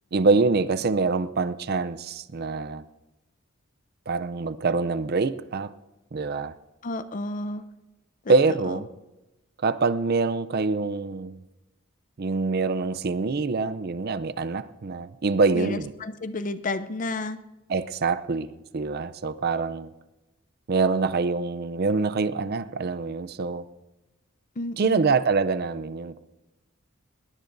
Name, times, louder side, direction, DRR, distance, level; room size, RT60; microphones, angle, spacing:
voice 1, 0.1-2.8 4.1-5.7 6.1-6.5 8.3-8.9 9.6-11.4 12.2-15.9 17.7-19.9 20.7-23.6 24.8-26.2, right 4 dB, 50° right, 14 dB, 0.5 m, -25 dB
voice 2, 6.8-7.7 8.2-8.3 8.7-8.8 15.5-17.4 24.6-25.1, left 2 dB, 40° left, 12 dB, 0.6 m, -31 dB
21.0 x 18.0 x 2.6 m, 1.0 s
head